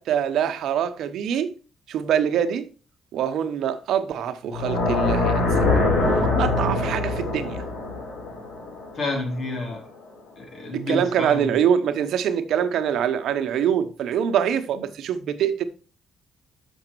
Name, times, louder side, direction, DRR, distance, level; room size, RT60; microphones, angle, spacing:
voice 1, 0.0-1.5 1.9-2.7 3.1-5.5 6.0-7.6 10.7-15.6, right 8 dB, 75° right, 0.8 m, -24 dB
sound 1, 4.5-9.6, left 2 dB, 80° left, 5.1 m, -23 dB
voice 2, 8.9-9.8 10.4-11.6, left 2 dB, 50° left, 3.6 m, -29 dB
7.0 x 6.0 x 4.6 m
cardioid pair, 90°, 0 cm